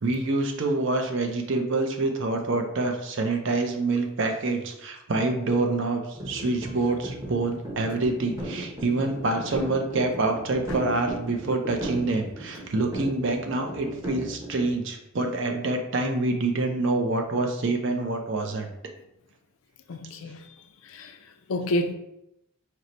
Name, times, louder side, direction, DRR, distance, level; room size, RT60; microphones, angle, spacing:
voice 1, 0.0-18.7, right 2 dB, 55° right, 4 dB, 0.5 m, -26 dB
sound 1, 6.1-14.7, right 1 dB, 15° right, 0.8 m, -37 dB
voice 2, 6.3-6.7 19.9-20.4 20.8-21.2 21.5-21.9, left 1 dB, 70° left, 7 dB, 0.4 m, -29 dB
4.4 x 2.1 x 3.8 m, 0.83 s
head